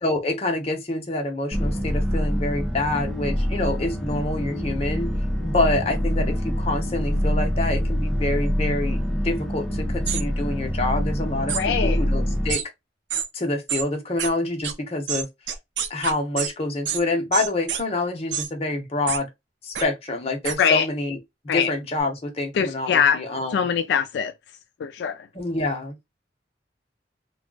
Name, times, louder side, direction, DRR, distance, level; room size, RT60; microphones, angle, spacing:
voice 1, 0.0-5.1 5.4-12.6 13.3-15.3 15.9-19.3 19.6-21.2 21.5-23.7 25.3-25.9, left 2 dB, 35° left, 0.8 m, -27 dB
sound 1, 1.5-12.5, equal, ahead, 0.5 m, -25 dB
sound 2, 10.1-10.2 11.5-11.6 12.5-12.6 13.1-13.3 13.7-13.8 14.2-14.3 14.6-14.7 15.1-16.5 16.9-17.0 17.3-17.8 18.3-18.5 19.1-19.2 19.8-19.9 20.4-20.6, right 8 dB, 85° right, 0.5 m, -27 dB
voice 2, 11.5-12.0 20.6-20.9 21.5-21.7 22.6-23.2 23.5-24.3 24.8-25.3, left 7 dB, 75° left, 0.3 m, -22 dB
2.3 x 2.1 x 3.7 m
head